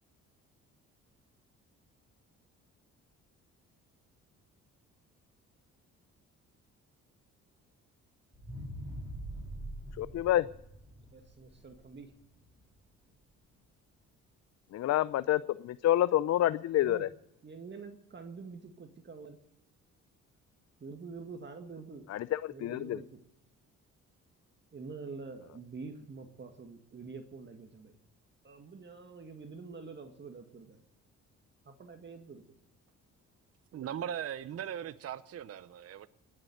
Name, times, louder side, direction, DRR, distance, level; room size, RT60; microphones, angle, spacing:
sound 1, 8.3-12.6 13.1-13.2, right 1 dB, 15° right, 4.3 m, -44 dB
voice 1, 10.0-10.5 14.7-17.1 22.1-23.0, left 13 dB, 60° left, 16 dB, 0.5 m, -28 dB
voice 2, 11.1-12.1 16.8-17.1 17.4-19.4 20.8-22.1 22.5-23.2 24.7-27.9 28.4-30.8 31.7-32.4, right 4 dB, 35° right, 6 dB, 1.9 m, -46 dB
voice 3, 33.7-36.1, right 9 dB, 50° right, 14 dB, 0.7 m, -39 dB
19.5 x 7.7 x 9.2 m, 0.83 s
cardioid pair, 90°, 30 cm